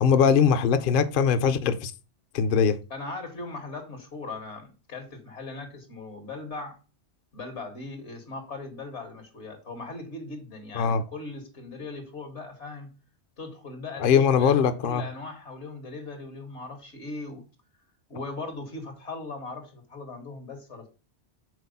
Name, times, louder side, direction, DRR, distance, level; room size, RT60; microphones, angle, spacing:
voice 1, 0.0-1.9 2.3-2.8 10.7-11.0 14.0-15.0, left 7 dB, 55° left, 0.8 m, -21 dB
voice 2, 2.9-6.8 7.3-12.9 13.4-17.4 18.1-20.9, left 3 dB, 80° left, 2.0 m, -39 dB
6.4 x 4.2 x 5.4 m
omnidirectional pair, 1.2 m